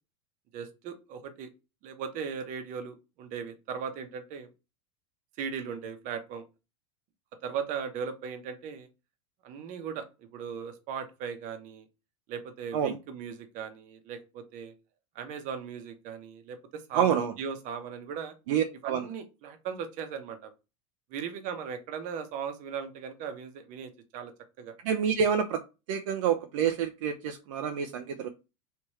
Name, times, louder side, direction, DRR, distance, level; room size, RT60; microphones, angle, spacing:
voice 1, 0.5-1.5 1.8-4.5 5.4-6.4 7.4-8.9 9.4-11.8 12.3-14.7 15.1-18.3 18.8-20.5 21.1-24.3 24.6-24.7, right 6 dB, 50° right, 8 dB, 1.0 m, -38 dB
voice 2, 16.9-17.3 18.5-19.1 24.8-25.6 25.9-28.3, right 8 dB, 70° right, 6 dB, 0.6 m, -27 dB
3.4 x 3.1 x 3.1 m, 0.27 s
supercardioid pair, 115°, 17 cm